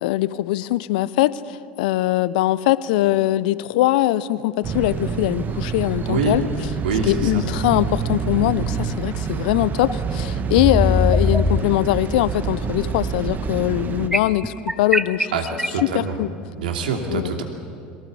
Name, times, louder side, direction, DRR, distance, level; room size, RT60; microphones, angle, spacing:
voice 1, 0.0-6.4 7.1-15.3 15.9-16.3 17.1-17.3, left 15 dB, 65° left, 18 dB, 0.7 m, -21 dB
sound 1, 4.6-14.1, right 6 dB, 35° right, 1.5 m, -27 dB
voice 2, 6.1-6.4 6.8-7.4 15.3-15.4 15.7-16.1 16.6-17.4, right 5 dB, 75° right, 4 dB, 2.7 m, -24 dB
sound 2, 9.9-10.0 10.6-11.6 14.1-15.8, left 1 dB, 10° right, 1.0 m, -20 dB
22.5 x 17.5 x 8.5 m, 2.3 s
figure-of-eight pair, 70°, 5 cm